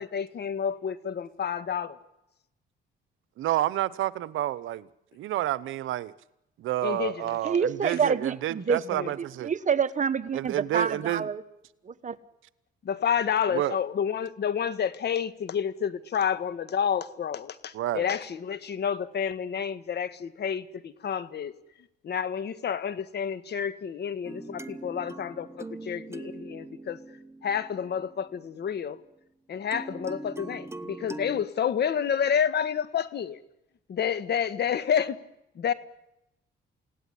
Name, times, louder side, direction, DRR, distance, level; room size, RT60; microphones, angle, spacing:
voice 1, 0.0-2.0 6.8-7.4 8.9-9.1 12.8-21.5 22.0-27.0 27.4-29.0 29.5-33.4 33.9-35.2 35.5-35.7, left 8 dB, 55° left, 1.6 m, -29 dB
voice 2, 3.4-4.9 5.2-6.1 6.6-9.5 10.3-11.3 13.5-13.8 17.7-18.1, right 14 dB, 80° right, 0.9 m, -29 dB
voice 3, 7.4-9.1 9.4-11.4 11.8-12.2, right 6 dB, 40° right, 1.4 m, -27 dB
sound 1, 24.2-28.5 29.7-31.5, right 2 dB, 15° right, 1.0 m, -42 dB
29.0 x 17.5 x 10.0 m
cardioid pair, 90°, 20 cm